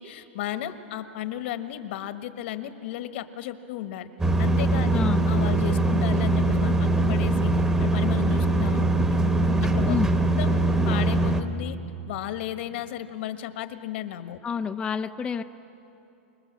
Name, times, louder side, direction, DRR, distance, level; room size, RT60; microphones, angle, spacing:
voice 1, 0.0-4.1 4.4-5.0 5.3-7.5 7.8-9.2 9.6-10.0 10.4-11.8 12.1-14.4, left 12 dB, 60° left, 9 dB, 1.4 m, -34 dB
sound 1, 4.2-11.4, right 2 dB, 10° right, 1.0 m, -22 dB
voice 2, 4.9-5.3 9.9-10.2 14.4-15.4, left 6 dB, 15° left, 7 dB, 0.4 m, -28 dB
25.5 x 22.0 x 7.4 m, 2.9 s
supercardioid pair, 150°, 7 cm